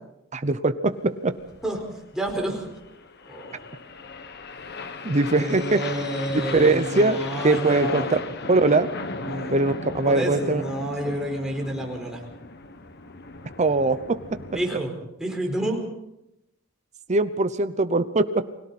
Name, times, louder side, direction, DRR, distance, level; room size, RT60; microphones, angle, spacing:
voice 1, 0.3-1.4 5.0-5.8 6.5-7.2 7.4-8.2 8.5-8.9 9.5-10.6 13.6-14.4 17.1-18.5, right 3 dB, 35° right, 10 dB, 0.8 m, -21 dB
sound 1, 1.3-14.7, left 3 dB, 55° left, 1.4 m, -36 dB
voice 2, 2.1-2.7 3.3-3.5 5.3-8.2 9.2-9.6 10.0-12.2 14.5-14.9 15.2-15.8, right 1 dB, 5° right, 0 dB, 4.8 m, -29 dB
30.0 x 21.5 x 4.3 m, 0.85 s
head